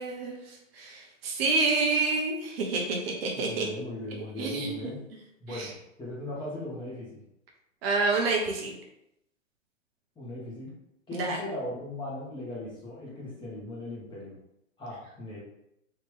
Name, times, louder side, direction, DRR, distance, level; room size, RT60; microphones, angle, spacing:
voice 1, 0.0-3.7 4.4-4.9 5.5-5.7 7.8-8.8 11.1-11.4, right 3 dB, 50° right, 0 dB, 0.8 m, -28 dB
voice 2, 3.3-5.0 5.4-5.7 6.0-7.2 10.2-10.7 11.1-14.3 14.8-15.4, left 1 dB, 10° left, -6 dB, 1.2 m, -38 dB
3.3 x 2.9 x 3.3 m, 0.82 s
hypercardioid pair, 115°, 39 cm